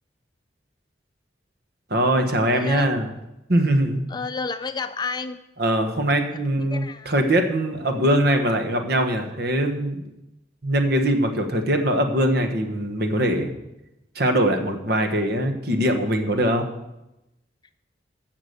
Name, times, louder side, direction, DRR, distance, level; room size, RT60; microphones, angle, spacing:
voice 1, 1.9-3.1 3.5-4.0 5.6-10.1 10.6-13.5 14.1-16.7, right 1 dB, 60° right, 5 dB, 1.4 m, -22 dB
voice 2, 2.5-3.0 4.1-5.4 6.6-7.3, left 4 dB, 25° left, 10 dB, 0.5 m, -31 dB
14.5 x 6.0 x 6.8 m, 0.91 s
head